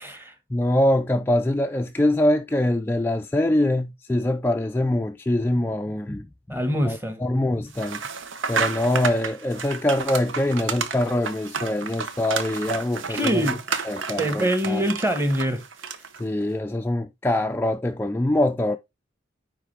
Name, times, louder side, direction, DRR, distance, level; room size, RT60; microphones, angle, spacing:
voice 1, 0.0-0.3 6.5-7.2 13.1-13.6 14.2-15.6, equal, 10° right, 1.3 m, -24 dB
voice 2, 0.5-8.0 8.5-13.5 13.8-14.9 16.2-18.8, left 1 dB, 10° left, 0.3 m, -24 dB
sound 1, 7.7-16.2, right 5 dB, 85° right, 0.9 m, -31 dB
9.7 x 3.8 x 3.3 m
head